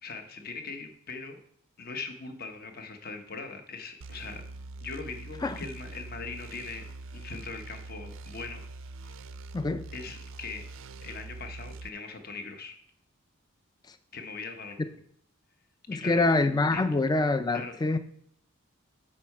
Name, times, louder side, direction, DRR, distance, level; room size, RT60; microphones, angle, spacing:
voice 1, 0.0-1.4 1.8-4.4 4.8-8.6 9.0-9.2 9.9-10.7 11.0-12.8 14.1-14.8 15.9-16.3 16.7-16.8 17.5-17.8, left 4 dB, 45° left, 0.9 m, -40 dB
sound 1, 4.0-11.9, right 3 dB, 65° right, 0.4 m, -43 dB
voice 2, 9.5-9.8 15.9-18.0, left 2 dB, 20° left, 0.3 m, -25 dB
7.4 x 5.5 x 4.8 m
head